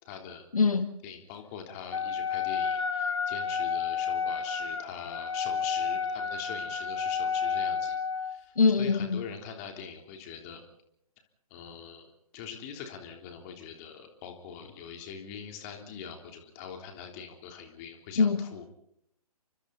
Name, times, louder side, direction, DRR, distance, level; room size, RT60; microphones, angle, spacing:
voice 1, 0.0-0.5 1.0-10.6 11.5-18.8, left 7 dB, 25° left, 3.6 m, -43 dB
voice 2, 0.5-1.0 8.6-9.2 18.2-18.5, left 4 dB, 65° left, 1.5 m, -24 dB
Wind instrument woodwind instrument, 1.9-8.4, left 6 dB, 50° left, 2.7 m, -31 dB
30.0 x 24.5 x 4.2 m
figure-of-eight pair, 135°, 20 cm